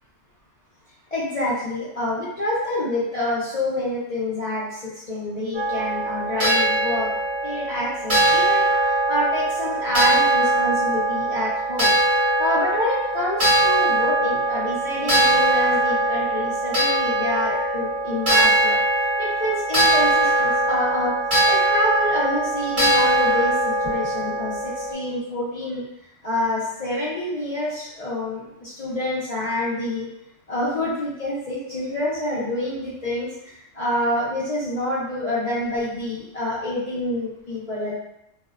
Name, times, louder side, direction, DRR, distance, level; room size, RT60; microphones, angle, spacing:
voice 1, 1.1-7.1 7.4-11.9 12.4-18.8 19.2-21.1 21.4-25.8 26.2-30.1 30.5-37.9, left 1 dB, 60° left, -9 dB, 0.4 m, -27 dB
sound 1, 5.5-24.9, right 2 dB, 40° right, 1.1 m, -21 dB
2.5 x 2.1 x 2.3 m, 0.81 s
omnidirectional pair, 1.3 m